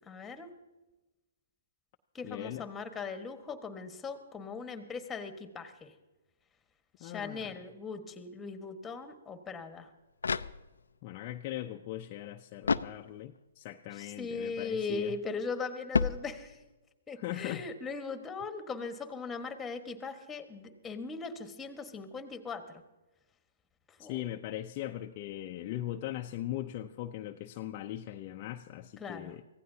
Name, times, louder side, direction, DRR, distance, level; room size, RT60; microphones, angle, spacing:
voice 1, 0.1-0.5 2.1-5.9 7.0-9.9 13.9-16.6 17.1-22.8 24.0-24.2 29.0-29.4, left 4 dB, 10° left, 8 dB, 1.5 m, -39 dB
voice 2, 2.2-2.7 7.0-7.5 11.0-15.2 17.2-17.7 24.0-29.4, left 13 dB, 35° left, 3 dB, 0.7 m, -39 dB
sound 1, 9.7-11.1 12.6-13.5 15.9-16.8, left 5 dB, 80° left, 0.5 m, -33 dB
24.5 x 16.0 x 2.8 m, 1.1 s
hypercardioid pair, 130°, 0 cm